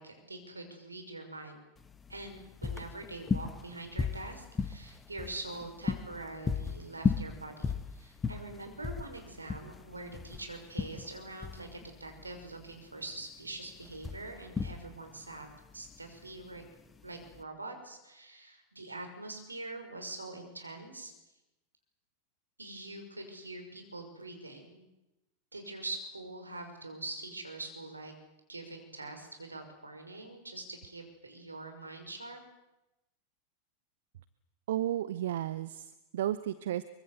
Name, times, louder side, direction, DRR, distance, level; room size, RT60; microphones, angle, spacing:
voice 1, 0.0-1.6 2.1-15.5 15.7-16.6 17.0-21.1 22.6-24.9 25.5-28.1 28.5-32.4, right 2 dB, 80° right, 6 dB, 5.9 m, -44 dB
sound 1, 1.8-17.4, left 5 dB, 15° left, 1.4 m, -36 dB
voice 2, 34.7-36.8, right 12 dB, 60° right, 15 dB, 0.9 m, -33 dB
24.5 x 24.0 x 8.2 m, 0.97 s
figure-of-eight pair, 90°, 0 cm